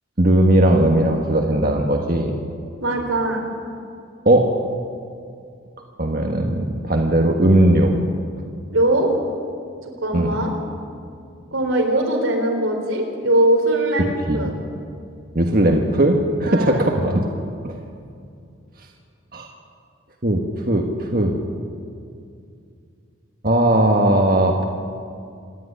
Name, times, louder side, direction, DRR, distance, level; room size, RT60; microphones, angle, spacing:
voice 1, 0.2-2.3 4.2-4.5 6.0-8.0 10.1-10.3 14.3-14.5 15.3-17.2 17.6-17.7 19.3-19.5 20.2-21.4 23.4-24.6, right 1 dB, 45° right, 2 dB, 1.5 m, -18 dB
voice 2, 2.8-3.4 8.7-9.1 10.0-10.5 11.5-14.5 16.5-16.8 17.1-17.2, right 1 dB, 85° right, 2 dB, 4.1 m, -20 dB
27.0 x 11.0 x 9.9 m, 2.4 s
head